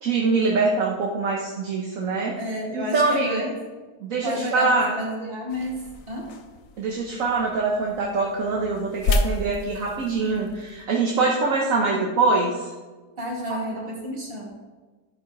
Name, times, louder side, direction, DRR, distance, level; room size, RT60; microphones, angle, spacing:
voice 1, 0.0-2.4 2.7-3.5 4.0-5.0 6.8-12.7 13.5-13.6, right 3 dB, 65° right, -1 dB, 1.3 m, -24 dB
voice 2, 2.3-3.5 4.2-6.3 13.2-14.5, equal, 40° right, -3 dB, 2.4 m, -31 dB
sound 1, 5.5-10.9, left 3 dB, 65° left, 1.1 m, -31 dB
13.0 x 5.0 x 4.7 m, 1.3 s
omnidirectional pair, 1.5 m